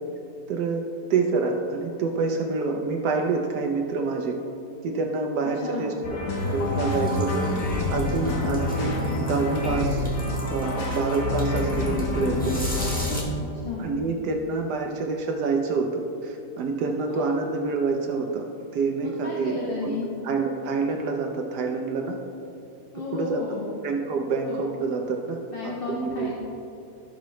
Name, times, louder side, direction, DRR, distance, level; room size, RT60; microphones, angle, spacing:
voice 1, 0.5-0.8 1.1-4.4 4.8-5.9 6.5-7.5 7.9-10.0 10.5-12.6 13.8-15.9 16.2-18.5 18.7-19.5 19.8-19.9 20.2-22.2 23.1-23.4 23.8-25.4 25.6-26.3, right 4 dB, 75° right, 2 dB, 1.3 m, -27 dB
voice 2, 5.4-5.9 8.2-8.6 13.3-13.9 17.0-17.3 19.0-20.1 22.9-23.7 24.4-24.7 25.5-26.3, left 4 dB, 35° left, -6 dB, 1.5 m, -34 dB
sound 1, 6.0-13.2, left 2 dB, 70° left, 1.6 m, -27 dB
sound 2, 6.4-13.2, equal, 5° left, 1.3 m, -41 dB
16.5 x 5.9 x 3.1 m, 2.8 s
omnidirectional pair, 1.8 m